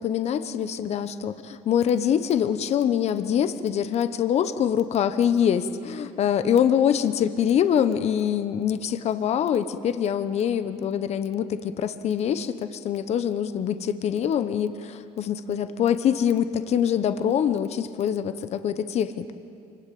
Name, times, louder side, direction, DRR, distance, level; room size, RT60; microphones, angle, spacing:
voice 1, 0.0-19.3, left 9 dB, 55° left, 11 dB, 1.1 m, -24 dB
24.5 x 21.0 x 8.6 m, 2.7 s
supercardioid pair, 90°, 14 cm